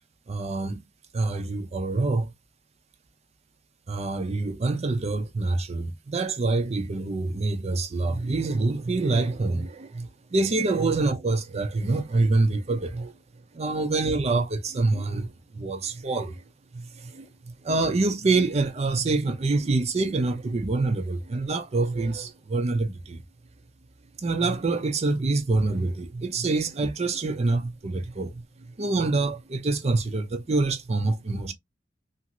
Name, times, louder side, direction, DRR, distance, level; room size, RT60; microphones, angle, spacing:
voice 1, 0.3-0.9 1.1-2.3 3.9-13.2 13.5-16.4 16.7-23.2 24.2-31.5, right 3 dB, 35° right, 0.5 m, -26 dB
2.6 x 2.5 x 2.8 m
head